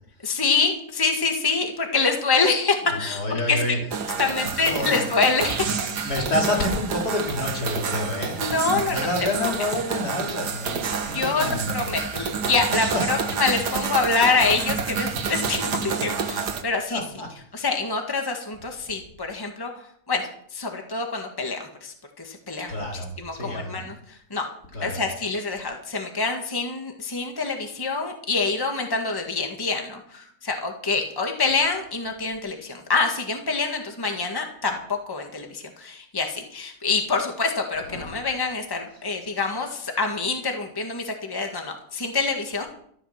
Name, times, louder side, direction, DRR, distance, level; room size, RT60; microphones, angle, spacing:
voice 1, 0.2-3.6 4.2-5.7 8.4-9.0 11.1-17.0 17.5-19.7 20.1-24.4 24.8-42.7, left 4 dB, 15° left, 3 dB, 1.8 m, -26 dB
voice 2, 2.9-3.8 4.2-5.1 6.0-12.0 12.9-13.0 16.9-17.3 22.7-23.9 24.7-25.1 37.9-38.1, left 2 dB, 70° left, 0 dB, 3.9 m, -29 dB
sound 1, 3.9-16.6, right 6 dB, 85° right, 1.9 m, -29 dB
14.0 x 11.0 x 5.9 m, 0.64 s
omnidirectional pair, 1.7 m